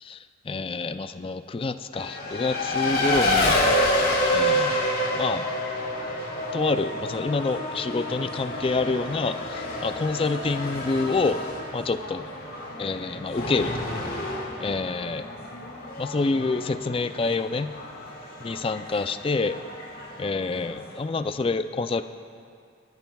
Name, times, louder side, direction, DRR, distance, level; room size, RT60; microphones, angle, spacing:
voice 1, 0.0-3.6 4.3-4.8 5.2-5.5 6.5-11.4 11.7-12.3 12.8-13.7 14.6-15.2 16.0-17.7 18.4-19.6 20.2-22.0, left 3 dB, 25° left, 10 dB, 0.3 m, -27 dB
Race car auto racing, 1.9-21.1, left 1 dB, 50° left, 1.7 m, -29 dB
22.0 x 13.5 x 2.3 m, 2.3 s
head